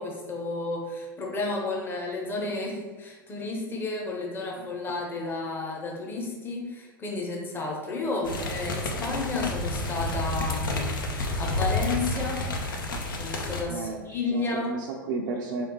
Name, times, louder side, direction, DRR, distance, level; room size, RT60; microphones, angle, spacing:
voice 1, 0.0-12.5 13.1-14.8, left 3 dB, 20° left, -1 dB, 0.9 m, -32 dB
sound 1, 8.2-13.6, left 2 dB, 75° left, 0.6 m, -30 dB
voice 2, 13.7-15.7, right 3 dB, 65° right, 0 dB, 0.4 m, -33 dB
3.7 x 3.4 x 2.9 m, 1.3 s
figure-of-eight pair, 85°, 11 cm